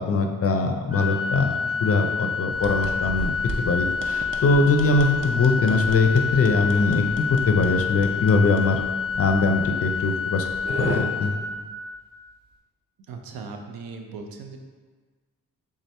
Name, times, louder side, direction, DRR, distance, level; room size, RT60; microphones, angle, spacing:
voice 1, 0.0-1.5 1.8-3.3 3.6-7.0 7.3-8.8 9.2-10.4 10.8-11.3, left 3 dB, 40° left, 4 dB, 0.4 m, -21 dB
Organ, 0.9-12.0, left 5 dB, 15° right, 0.9 m, -28 dB
sound 1, 2.5-11.0, right 2 dB, 35° right, 0.5 m, -37 dB
voice 2, 13.1-14.6, right 4 dB, 85° right, 4 dB, 0.5 m, -38 dB
3.5 x 2.8 x 3.2 m, 1.4 s
cardioid pair, 75°, 35 cm